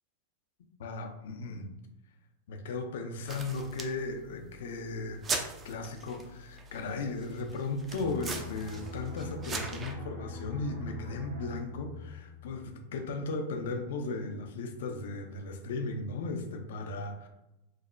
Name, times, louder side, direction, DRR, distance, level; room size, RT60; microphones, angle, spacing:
voice 1, 0.8-1.7 2.5-5.2 5.6-17.3, left 3 dB, 70° left, 5 dB, 0.4 m, -36 dB
sound 1, 3.3-9.9, right 3 dB, 25° right, 0.4 m, -41 dB
sound 2, 7.9-13.3 13.6-13.9, left 2 dB, 85° right, 1.3 m, -44 dB
2.9 x 2.0 x 2.4 m, 0.94 s
hypercardioid pair, 100°, 0 cm